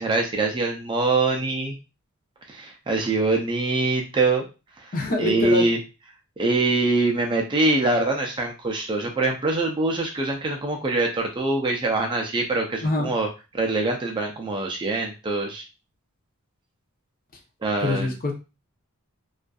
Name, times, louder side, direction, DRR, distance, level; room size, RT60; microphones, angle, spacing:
voice 1, 0.0-1.7 2.5-4.4 5.2-5.8 6.4-13.3 13.5-15.6 17.6-18.1, right 2 dB, 20° right, 2 dB, 0.4 m, -24 dB
voice 2, 4.9-5.7 12.8-13.1 17.8-18.3, left 2 dB, 40° left, 1 dB, 0.6 m, -24 dB
2.5 x 2.4 x 2.2 m, 0.29 s
head